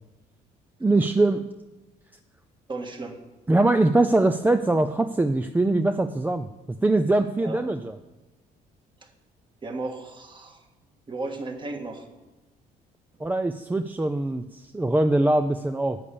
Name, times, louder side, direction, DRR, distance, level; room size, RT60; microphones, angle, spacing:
voice 1, 0.8-1.4 3.5-8.0 13.2-16.0, right 2 dB, 10° right, 8 dB, 0.4 m, -22 dB
voice 2, 2.7-3.2 7.4-7.6 9.6-10.6 11.1-12.1, right 3 dB, 30° right, 4 dB, 1.6 m, -34 dB
10.5 x 8.5 x 6.9 m, 1.1 s
cardioid pair, 110°, 17 cm